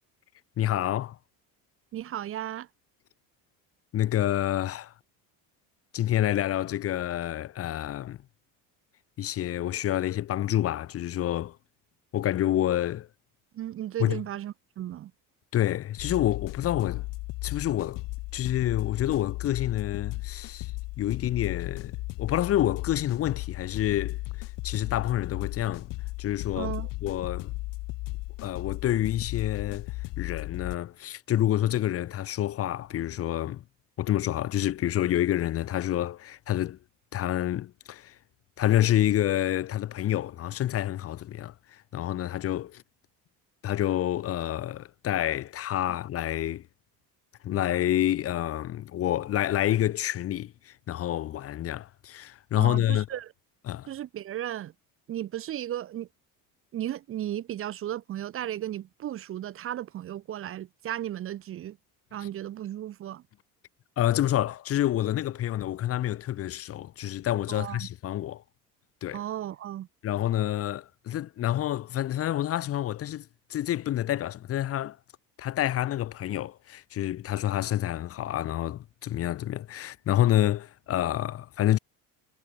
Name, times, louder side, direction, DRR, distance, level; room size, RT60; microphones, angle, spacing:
voice 1, 0.6-1.2 3.9-4.9 5.9-8.2 9.2-11.6 12.1-13.1 14.0-14.2 15.5-17.0 17.4-18.0 18.3-20.7 21.0-24.2 24.6-25.9 26.2-26.7 27.0-27.5 28.4-33.6 34.0-36.8 37.1-38.2 38.6-42.8 43.6-46.6 47.4-53.1 53.7-53.9 64.0-68.4 69.0-69.2 70.0-75.0 75.4-81.8, left 12 dB, 40° left, 1.4 m, -28 dB
voice 2, 1.9-2.7 13.5-15.1 26.6-26.9 52.6-53.3 53.9-54.7 55.1-56.1 56.7-61.8 62.1-63.2 67.5-67.9 69.1-69.9, right 12 dB, 35° right, 1.0 m, -35 dB
sound 1, 16.0-30.8, left 21 dB, 65° left, 1.6 m, -35 dB
cardioid pair, 160°, 36 cm